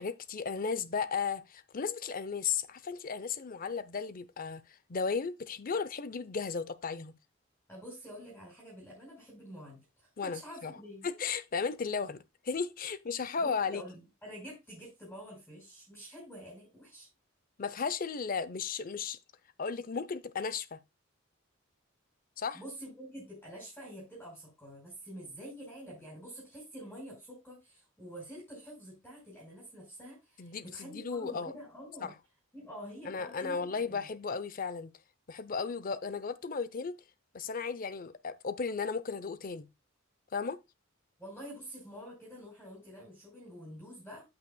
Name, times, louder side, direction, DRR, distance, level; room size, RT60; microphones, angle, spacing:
voice 1, 0.0-4.6 4.9-7.1 10.2-10.7 11.0-13.8 17.6-19.2 19.6-20.8 22.4-22.6 30.4-31.5 32.0-32.1 33.1-34.9 35.3-37.0 37.3-39.7 40.3-40.6, left 5 dB, 45° left, 0.6 m, -35 dB
voice 2, 7.7-11.0 13.4-17.1 22.5-32.1 32.5-34.1 41.2-44.2, equal, 5° left, 5.0 m, -47 dB
14.0 x 5.8 x 2.2 m
head